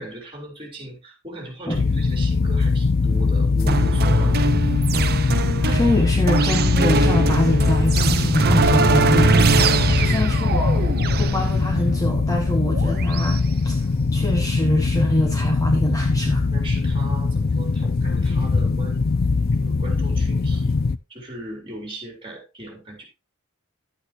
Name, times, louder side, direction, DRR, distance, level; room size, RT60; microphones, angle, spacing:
voice 1, 0.0-4.5 9.8-10.4 16.5-19.1 19.5-20.8 21.1-23.0, right 1 dB, 25° right, 3.7 m, -37 dB
sound 1, 1.7-21.0, left 4 dB, 45° left, 0.5 m, -21 dB
sound 2, 3.7-13.4, right 3 dB, 50° right, 0.6 m, -22 dB
voice 2, 5.6-10.9 11.2-13.9 14.1-16.5, left 1 dB, 15° left, 1.3 m, -24 dB
11.0 x 8.8 x 2.9 m
head